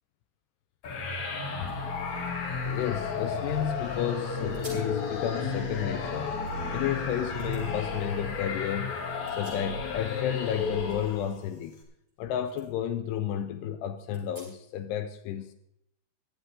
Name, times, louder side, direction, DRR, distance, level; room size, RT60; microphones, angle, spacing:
sound 1, 0.8-11.4, left 4 dB, 55° left, 2.1 m, -33 dB
sound 2, 1.4-3.6 4.0-4.1 4.5-5.0 5.4-6.8 7.4-7.6 9.0-10.1 10.4-12.2 12.5-12.7 13.1-13.2 14.1-14.8, right 1 dB, 10° right, 5.3 m, -54 dB
voice 1, 2.7-6.4 6.7-9.0 9.3-11.8 12.2-15.5, left 10 dB, 85° left, 2.4 m, -32 dB
22.5 x 7.9 x 3.6 m
omnidirectional pair, 5.5 m